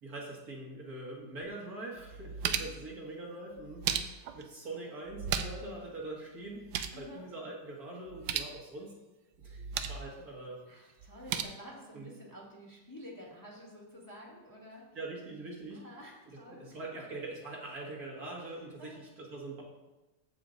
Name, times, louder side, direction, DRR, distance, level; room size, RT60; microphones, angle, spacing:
voice 1, 0.0-6.6 7.0-8.9 9.4-10.6 11.9-12.1 14.9-15.8 16.5-19.6, right 2 dB, 55° right, -3 dB, 2.2 m, -43 dB
sound 1, 1.4-1.5 2.0-2.9 3.6-4.4 5.1-5.7 6.0-6.1 6.4-7.0 8.1-8.5 9.4-10.1 11.0-11.4, right 8 dB, 70° right, 1.2 m, -35 dB
voice 2, 2.1-3.1 6.9-7.2 10.7-14.9 15.7-16.8 18.8-19.0, equal, 10° left, -3 dB, 1.8 m, -50 dB
14.5 x 5.0 x 3.9 m, 1.1 s
omnidirectional pair, 1.9 m